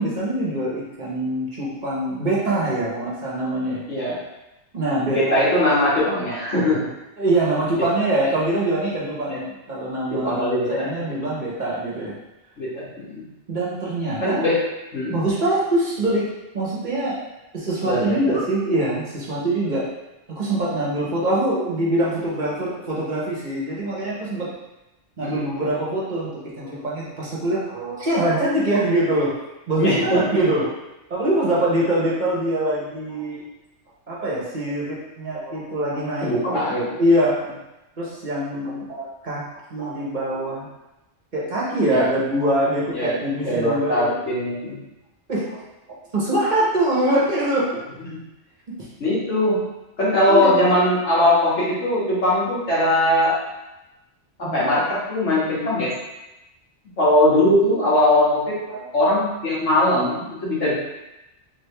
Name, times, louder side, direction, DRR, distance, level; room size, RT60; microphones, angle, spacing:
voice 1, 0.0-3.8 4.7-5.4 7.2-12.2 13.5-14.4 15.1-16.3 16.5-17.2 17.5-19.8 20.3-24.5 25.2-29.3 29.7-30.7 31.1-33.4 34.1-36.3 37.0-37.4 38.0-39.4 39.7-40.7 41.3-44.1 45.3-45.6 46.1-47.7 50.3-50.8 54.4-54.7 58.7-58.9, right 1 dB, 45° right, -6 dB, 1.0 m, -23 dB
voice 2, 5.1-6.8 9.3-9.4 10.1-10.9 12.6-13.2 14.2-14.6 14.9-15.1 17.8-18.2 25.2-25.4 29.8-30.0 36.2-36.8 41.8-42.1 42.9-43.2 43.4-44.7 49.0-49.6 50.0-53.4 54.4-54.8 55.1-55.9 57.0-58.6 58.9-60.7, left 1 dB, 80° left, -9 dB, 1.9 m, -20 dB
3.5 x 3.3 x 3.3 m, 0.98 s
omnidirectional pair, 1.2 m